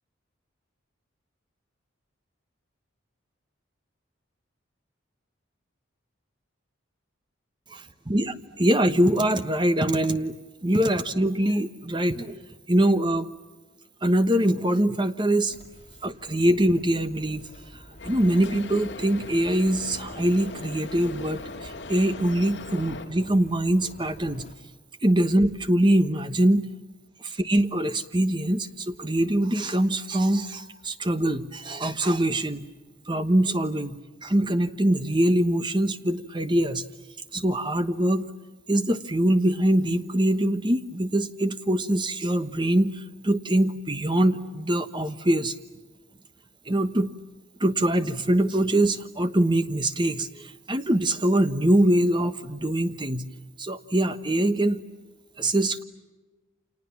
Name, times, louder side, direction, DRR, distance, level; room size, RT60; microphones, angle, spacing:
voice 1, 8.1-12.4 12.7-13.3 14.0-15.6 16.0-17.5 18.0-24.5 25.0-26.7 27.2-32.6 33.1-36.8 37.3-38.3 38.7-45.5 46.7-47.1 47.6-53.3 53.6-54.8 55.4-55.8, right 1 dB, 25° right, 10 dB, 1.1 m, -23 dB
sound 1, 15.5-24.5, left 1 dB, 35° left, 3.3 m, -48 dB
sound 2, 18.0-23.1, left 3 dB, 60° left, 2.6 m, -39 dB
30.0 x 27.0 x 7.2 m, 1.2 s
head